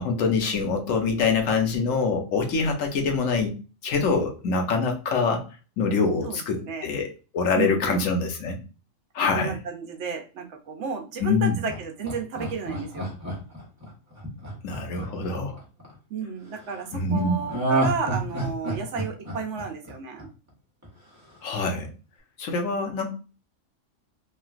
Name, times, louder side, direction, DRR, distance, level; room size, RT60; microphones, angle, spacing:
voice 1, 0.0-3.5 3.8-5.4 5.8-7.1 7.3-8.6 9.1-9.6 11.2-11.6 14.6-15.6 16.9-17.4 21.4-21.9 22.4-23.1, left 4 dB, 90° left, 3 dB, 1.1 m, -25 dB
voice 2, 6.2-6.9 7.5-8.0 9.3-13.1 16.1-20.3, right 5 dB, 70° right, 3 dB, 0.9 m, -32 dB
Laughter, 11.7-15.9 17.5-20.5 20.8-20.9, right 2 dB, 15° right, 0.9 m, -29 dB
3.1 x 2.5 x 2.3 m, 0.33 s
omnidirectional pair, 1.3 m